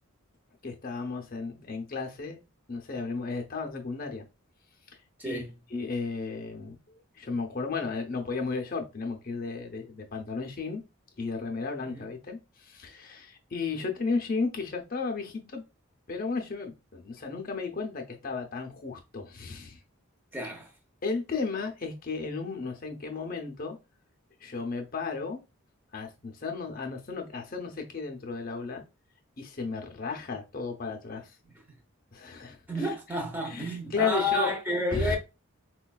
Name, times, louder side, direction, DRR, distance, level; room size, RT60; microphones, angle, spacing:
voice 1, 0.6-2.4 2.7-4.2 5.2-5.4 5.7-6.8 7.2-10.8 11.2-15.6 16.1-19.8 21.0-23.8 24.4-25.4 25.9-28.8 29.4-31.3 32.1-32.9 33.4-34.5 34.9-35.2, left 4 dB, 40° left, 0.6 m, -34 dB
voice 2, 20.3-20.7 32.7-35.2, left 1 dB, 10° right, 0.6 m, -30 dB
4.3 x 2.3 x 2.3 m
head